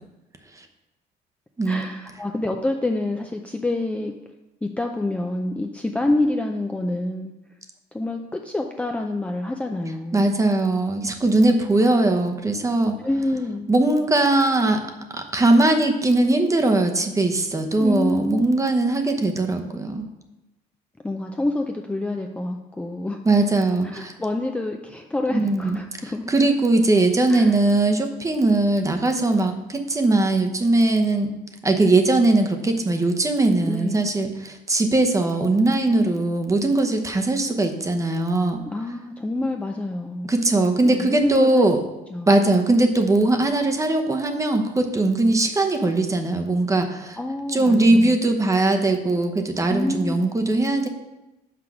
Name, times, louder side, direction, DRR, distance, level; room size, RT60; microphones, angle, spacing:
voice 1, 1.7-4.1 4.6-7.3 7.9-10.3 13.0-13.7 17.8-18.5 21.0-23.2 23.8-26.3 27.3-27.5 33.6-34.1 38.6-40.3 40.9-41.7 42.1-42.4 47.2-48.2 49.7-50.2, left 2 dB, 5° left, 2 dB, 0.4 m, -27 dB
voice 2, 10.1-13.0 13.7-14.8 15.1-20.1 23.2-24.1 25.3-25.8 26.3-31.3 31.6-38.6 40.2-41.8 42.3-47.2 47.5-50.9, right 2 dB, 20° right, 5 dB, 0.8 m, -20 dB
5.9 x 4.7 x 6.0 m, 0.98 s
cardioid pair, 110°, 17 cm